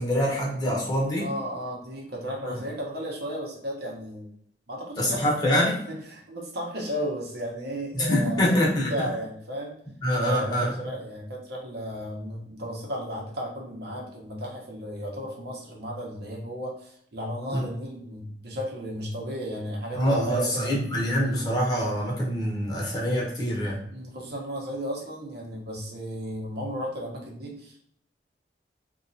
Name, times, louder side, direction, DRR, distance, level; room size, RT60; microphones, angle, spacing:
voice 1, 0.0-1.3 2.4-2.6 5.0-5.7 7.9-9.1 10.0-10.7 17.5-17.6 20.0-23.8, equal, 25° left, -4 dB, 0.9 m, -25 dB
voice 2, 1.2-4.3 4.7-5.2 5.5-9.7 10.1-20.8 23.9-27.8, equal, 65° right, -1 dB, 0.8 m, -34 dB
2.9 x 2.3 x 2.6 m, 0.66 s
head